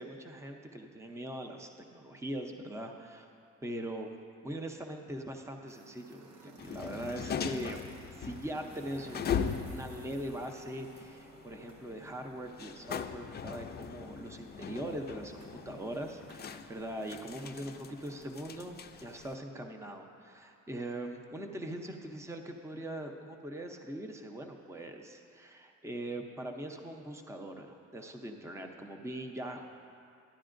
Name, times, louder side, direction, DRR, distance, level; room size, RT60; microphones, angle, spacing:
voice 1, 0.0-3.3 3.6-4.2 4.4-29.6, right 1 dB, 10° right, 4 dB, 0.6 m, -41 dB
sound 1, 5.7-18.8, right 4 dB, 75° right, 0.8 m, -57 dB
sound 2, 6.6-19.3, left 7 dB, 35° left, 0.4 m, -40 dB
13.0 x 9.9 x 2.5 m, 2.4 s
cardioid pair, 90°, 30 cm